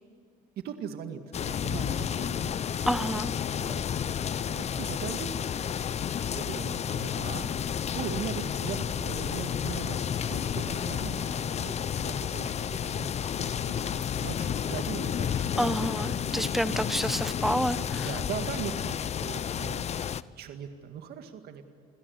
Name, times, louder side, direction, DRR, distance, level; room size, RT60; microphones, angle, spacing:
voice 1, 0.6-2.5 2.9-5.3 6.3-7.5 7.8-16.9 18.0-21.6, right 8 dB, 70° right, 6 dB, 2.1 m, -40 dB
sound 1, 1.3-20.2, left 8 dB, 40° left, 0.7 m, -31 dB
voice 2, 2.9-3.3 15.6-18.1, equal, ahead, 14 dB, 0.9 m, -29 dB
27.5 x 17.5 x 9.6 m, 2.4 s
cardioid pair, 110°, 17 cm